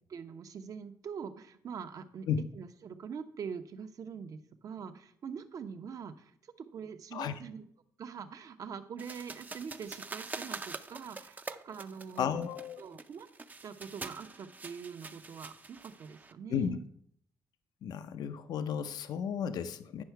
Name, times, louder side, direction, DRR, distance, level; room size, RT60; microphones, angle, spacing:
voice 1, 0.1-2.3 2.5-6.3 6.6-7.7 8.0-12.3 12.8-13.3 13.6-16.8, right 6 dB, 55° right, 9 dB, 0.8 m, -43 dB
sound 1, 9.0-16.3, right 3 dB, 25° right, 0.5 m, -45 dB
voice 2, 12.2-12.8 16.5-16.8 17.8-20.0, left 8 dB, 70° left, 11 dB, 0.5 m, -33 dB
9.6 x 5.7 x 4.6 m, 0.68 s
cardioid pair, 100°, 7 cm